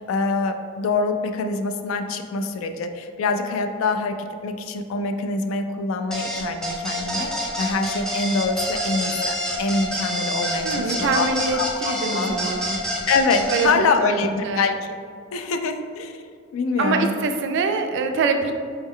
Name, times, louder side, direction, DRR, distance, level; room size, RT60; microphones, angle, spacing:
voice 1, 0.0-12.3 12.7-14.9 15.3-16.2 16.5-17.1, left 4 dB, 75° left, 6 dB, 0.3 m, -25 dB
sound 1, 6.1-13.7, equal, 5° left, 0.5 m, -27 dB
voice 2, 10.6-12.8 13.5-14.7 16.8-18.5, right 4 dB, 60° right, 5 dB, 0.3 m, -24 dB
4.4 x 2.1 x 3.6 m, 2.2 s
head